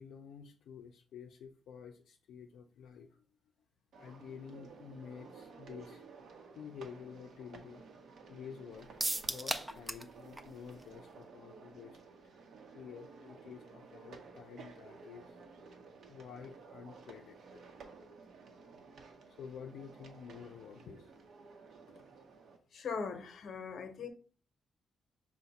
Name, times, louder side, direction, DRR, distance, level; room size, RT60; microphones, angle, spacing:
voice 1, 0.0-3.3 4.0-6.0 6.5-7.8 8.3-9.0 9.3-12.0 12.7-15.4 16.1-17.6 19.3-21.1, left 7 dB, 80° left, 2 dB, 0.4 m, -50 dB
sound 1, 3.9-22.6, right 4 dB, 60° right, 0.7 m, -54 dB
sound 2, 9.0-10.1 10.4-10.5 10.8-10.9, right 1 dB, 10° right, 0.3 m, -35 dB
voice 2, 22.7-24.1, left 5 dB, 55° left, 7 dB, 0.8 m, -40 dB
5.7 x 2.1 x 4.0 m, 0.40 s
cardioid pair, 130°, 0 cm